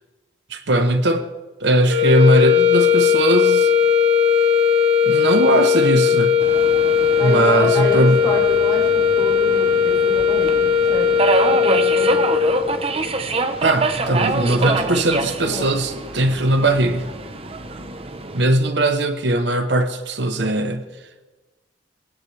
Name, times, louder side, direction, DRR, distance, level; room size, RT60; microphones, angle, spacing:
voice 1, 0.5-1.2 1.6-3.7 5.1-6.4 7.2-8.2 13.6-17.1 18.3-20.9, right 1 dB, 65° right, 8 dB, 1.0 m, -19 dB
sound 1, 1.8-12.7, left 7 dB, 80° right, 5.5 m, -17 dB
Subway metro underground, 6.4-18.4, right 3 dB, 30° right, 0.8 m, -26 dB
voice 2, 7.2-8.9 9.1-12.3 14.1-14.9 15.4-15.7, left 1 dB, 20° left, -4 dB, 5.0 m, -28 dB
21.0 x 16.5 x 3.3 m, 1.2 s
head